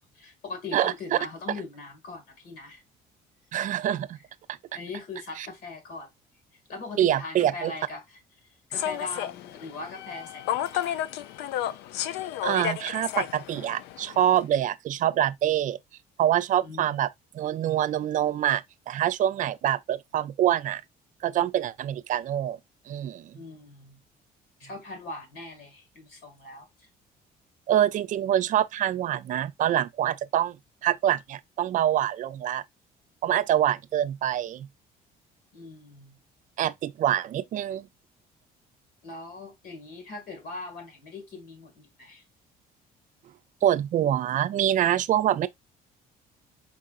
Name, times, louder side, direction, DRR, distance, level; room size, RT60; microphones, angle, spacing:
voice 1, 0.2-2.8 4.7-6.1 6.7-8.2 8.7-11.0 16.6-17.0 23.3-24.0 24.6-26.9 35.5-36.2 39.0-42.2, left 3 dB, 70° left, 1.8 m, -40 dB
voice 2, 3.5-4.2 5.4-5.5 7.0-7.7 12.4-15.8 16.2-17.1 17.3-20.8 21.2-22.6 22.9-23.4 27.7-30.6 30.8-32.6 33.2-34.7 36.6-37.9 43.6-45.5, right 11 dB, 50° right, 0.4 m, -25 dB
Human voice / Subway metro underground, 8.7-14.4, left 11 dB, 85° left, 0.4 m, -32 dB
4.8 x 3.6 x 2.4 m
cardioid pair, 110°, 17 cm